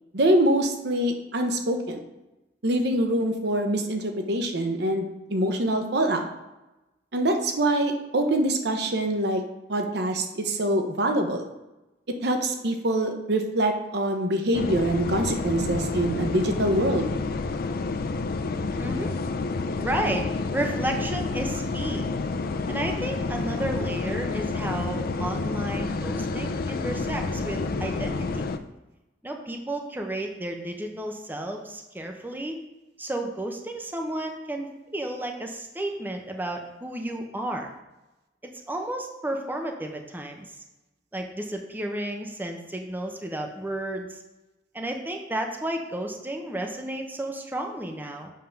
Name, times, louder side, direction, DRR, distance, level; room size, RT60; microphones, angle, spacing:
voice 1, 0.1-2.0 2.6-6.3 7.1-9.4 9.7-11.4 12.2-17.1, right 1 dB, 65° right, 4 dB, 0.8 m, -24 dB
sound 1, 14.5-28.6, left 3 dB, 55° left, 0.4 m, -29 dB
voice 2, 18.8-19.2 19.8-22.1 22.7-28.5 29.2-32.6 33.0-37.7 38.4-40.5 41.1-44.2 44.7-48.3, right 1 dB, 10° right, 3 dB, 0.7 m, -32 dB
7.5 x 3.6 x 5.7 m, 1.0 s
head